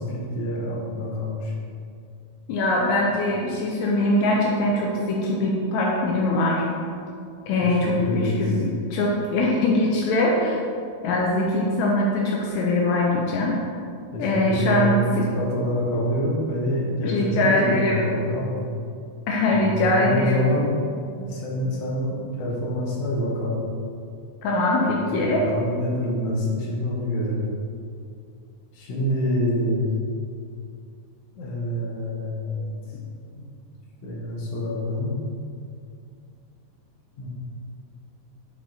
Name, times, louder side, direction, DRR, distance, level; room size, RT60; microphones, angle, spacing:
voice 1, 0.0-1.5 7.6-8.4 14.1-18.6 19.5-20.8 21.1-23.6 25.3-27.5 28.8-29.9 31.3-32.8 33.3-33.5 34.0-35.2 37.2-37.3, equal, 65° left, -3 dB, 1.7 m, -26 dB
voice 2, 2.5-6.6 7.5-10.6 11.0-13.6 14.2-15.0 17.0-18.0 19.3-20.5 24.4-25.5, left 1 dB, 85° left, -2 dB, 1.7 m, -22 dB
7.6 x 3.9 x 3.8 m, 2.4 s
omnidirectional pair, 4.0 m